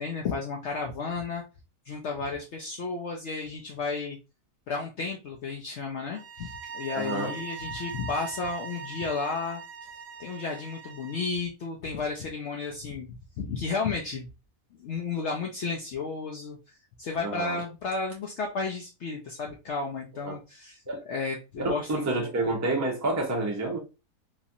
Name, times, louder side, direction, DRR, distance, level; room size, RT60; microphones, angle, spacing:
voice 1, 0.0-1.4 1.9-4.2 4.7-9.9 10.2-14.3 14.8-22.1, left 4 dB, 65° left, 0.7 m, -33 dB
sound 1, 6.1-11.3, right 6 dB, 75° right, 1.1 m, -41 dB
voice 2, 6.9-7.3 17.2-17.6 20.2-20.4 20.9-21.0 21.6-23.8, right 2 dB, 20° right, 0.5 m, -29 dB
3.0 x 2.5 x 2.6 m
omnidirectional pair, 1.5 m